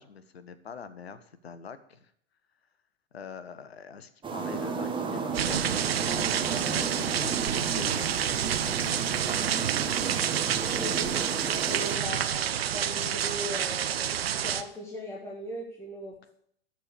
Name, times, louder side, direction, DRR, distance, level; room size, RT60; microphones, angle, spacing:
voice 1, 0.0-2.1 3.1-8.1 8.5-9.2, left 6 dB, 80° left, 13 dB, 1.0 m, -44 dB
Tai O ppl preparing dinner, 4.2-12.0, right 5 dB, 15° right, 1.3 m, -34 dB
sound 1, 5.3-14.6, right 9 dB, 75° right, 0.7 m, -29 dB
voice 2, 10.6-16.3, equal, 10° left, -2 dB, 1.7 m, -39 dB
12.5 x 4.5 x 8.1 m, 0.70 s
figure-of-eight pair, 95°, 31 cm